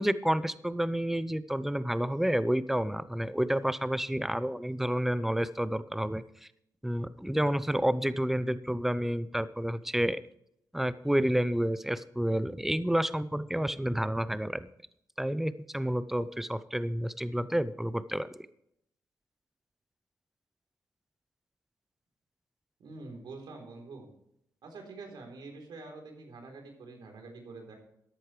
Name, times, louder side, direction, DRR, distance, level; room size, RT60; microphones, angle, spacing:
voice 1, 0.0-6.2 6.8-10.2 10.7-14.7 15.2-18.3, equal, 5° right, 15 dB, 0.7 m, -29 dB
voice 2, 22.8-24.1 24.6-27.7, right 3 dB, 75° right, 3 dB, 3.8 m, -46 dB
14.0 x 10.5 x 3.3 m, 0.75 s
cardioid pair, 85°, 7 cm